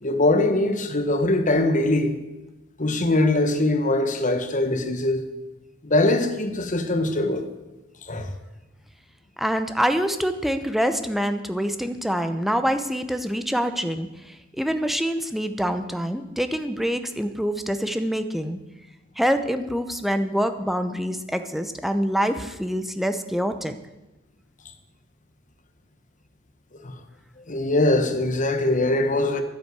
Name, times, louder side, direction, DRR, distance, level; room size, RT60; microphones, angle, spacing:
voice 1, 0.0-2.1 2.8-5.2 5.8-7.5 8.0-8.3 26.8-26.9 27.5-29.4, left 2 dB, 40° left, 1.3 m, -22 dB
voice 2, 9.4-18.6 19.2-23.7, equal, ahead, 0.8 m, -25 dB
11.0 x 10.0 x 8.1 m
head